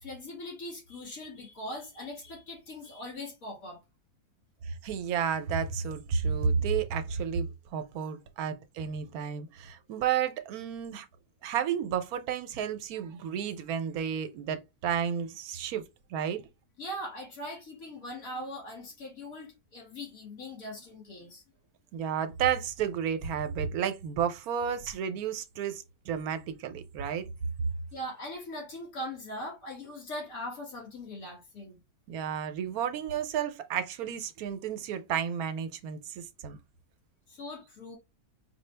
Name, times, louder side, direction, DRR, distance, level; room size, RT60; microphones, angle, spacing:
voice 1, 0.0-3.8 16.8-21.4 27.9-31.8 37.3-38.0, left 1 dB, 70° left, 2.4 m, -40 dB
voice 2, 4.7-7.5 7.7-11.1 11.4-15.8 16.1-16.4 21.9-27.2 32.1-36.6, right 7 dB, 80° right, 1.1 m, -32 dB
4.9 x 2.3 x 3.3 m
omnidirectional pair, 1.6 m